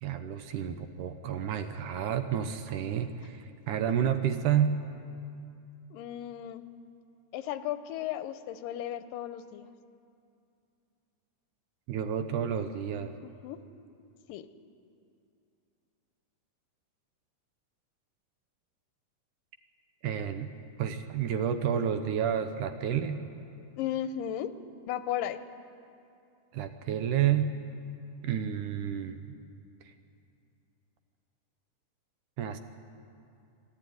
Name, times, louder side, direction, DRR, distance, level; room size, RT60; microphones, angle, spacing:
voice 1, 0.0-4.8 11.9-13.1 20.0-20.5 20.8-23.2 26.5-27.5 28.2-29.4 29.9-30.0 32.4-32.6, right 9 dB, 75° right, 9 dB, 2.2 m, -30 dB
voice 2, 5.9-6.6 7.3-9.7 13.2-13.6 14.3-14.5 23.8-24.5 24.9-25.4, left 11 dB, 90° left, 11 dB, 2.4 m, -35 dB
25.5 x 12.5 x 9.4 m, 2.6 s
omnidirectional pair, 3.9 m